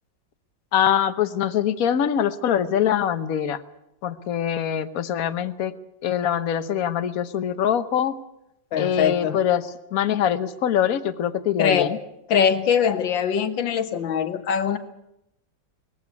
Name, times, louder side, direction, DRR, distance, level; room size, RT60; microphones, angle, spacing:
voice 1, 0.7-3.6 4.0-5.7 6.0-8.1 8.8-12.0, left 9 dB, 55° left, 12 dB, 1.3 m, -23 dB
voice 2, 8.7-9.4 11.6-11.9 12.3-14.8, left 7 dB, 75° left, 10 dB, 2.0 m, -22 dB
20.0 x 15.5 x 9.6 m, 0.83 s
omnidirectional pair, 2.1 m